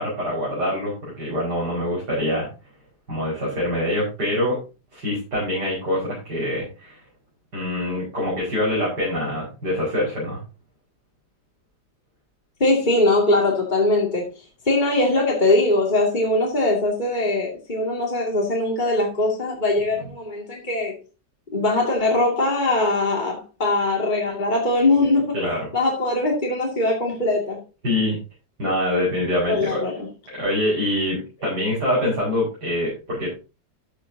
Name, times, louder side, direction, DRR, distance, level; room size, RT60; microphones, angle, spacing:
voice 1, 0.0-2.5 3.1-4.6 4.9-7.0 7.5-10.4 25.3-25.7 27.8-28.2 28.6-29.8 30.3-33.3, left 1 dB, 70° right, 6.1 m, -24 dB
voice 2, 12.6-14.3 14.7-20.9 21.5-25.3 25.7-27.6 29.5-30.1, left 2 dB, 25° left, 2.6 m, -21 dB
13.0 x 8.0 x 2.8 m
omnidirectional pair, 1.8 m